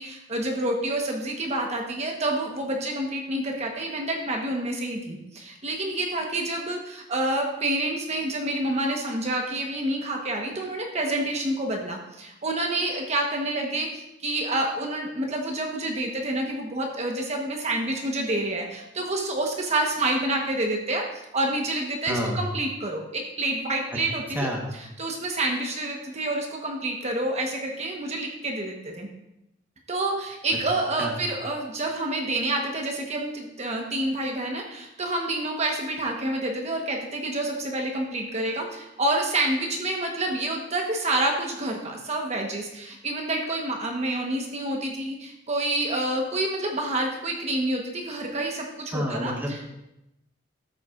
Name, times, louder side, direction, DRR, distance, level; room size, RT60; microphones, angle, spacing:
voice 1, 0.0-21.0 21.3-24.6 25.0-29.1 29.9-49.6, right 1 dB, 35° right, 1 dB, 1.2 m, -28 dB
voice 2, 22.1-22.4 23.9-24.0 24.3-24.7 31.0-31.2 48.9-49.8, equal, 10° right, -1 dB, 1.2 m, -29 dB
13.5 x 8.1 x 2.5 m, 0.87 s
head